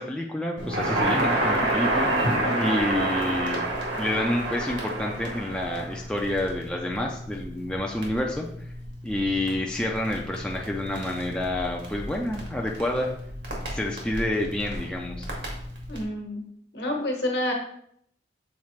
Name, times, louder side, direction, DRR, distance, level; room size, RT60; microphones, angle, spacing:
voice 1, 0.0-3.7 4.0-8.5 9.0-13.1 13.7-15.3, left 1 dB, 5° left, -1 dB, 0.4 m, -28 dB
Crackle, 0.6-16.0, right 1 dB, 80° right, 1.6 m, -30 dB
voice 2, 2.1-2.5 15.9-16.4 16.7-17.5, left 1 dB, 60° left, 1 dB, 1.3 m, -28 dB
7.2 x 4.1 x 3.2 m, 0.69 s
head